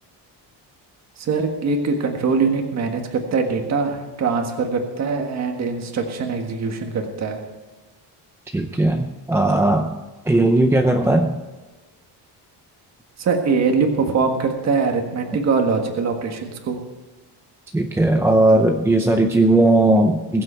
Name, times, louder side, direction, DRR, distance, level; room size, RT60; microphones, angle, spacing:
voice 1, 1.2-7.4 13.2-16.8, right 4 dB, 40° right, 3 dB, 1.6 m, -22 dB
voice 2, 8.5-9.9 10.3-11.4 17.7-20.4, right 2 dB, 5° right, 3 dB, 0.5 m, -17 dB
21.5 x 7.7 x 4.5 m, 1.3 s
cardioid pair, 175°, 41 cm